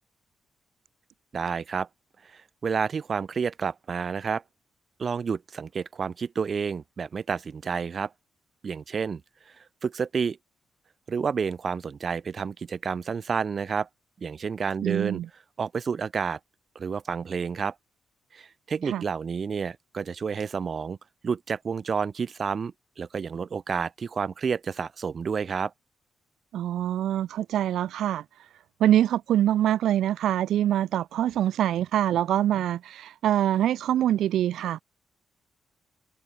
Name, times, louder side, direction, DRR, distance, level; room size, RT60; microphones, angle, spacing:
voice 1, 1.3-1.9 2.2-4.4 5.0-8.1 8.6-9.2 9.5-10.4 11.1-13.9 14.2-15.2 15.6-16.4 16.7-17.7 18.3-21.0 21.2-25.7, right 6 dB, 55° right, 1.2 m, -30 dB
voice 2, 14.8-15.3 18.9-19.0 26.5-28.2 28.8-34.8, right 11 dB, 75° right, 0.6 m, -24 dB
hypercardioid pair, 40°, 0 cm